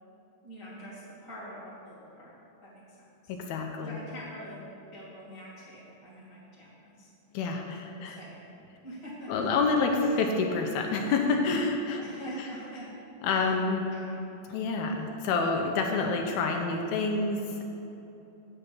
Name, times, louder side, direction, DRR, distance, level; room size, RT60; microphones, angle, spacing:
voice 1, 0.4-2.3 2.6-3.0 3.2-3.3 3.8-4.6 4.9-7.1 8.0-8.4 8.8-9.5 10.0-10.1 12.0-12.9 13.3-13.5 13.8-14.2, equal, 45° right, -8 dB, 0.3 m, -45 dB
voice 2, 3.3-4.0 7.3-8.2 9.3-12.0 12.4-12.5 13.2-13.9 14.5-17.6, left 4 dB, 80° left, 2 dB, 2.5 m, -28 dB
8.2 x 6.5 x 6.1 m, 2.9 s
omnidirectional pair, 4.6 m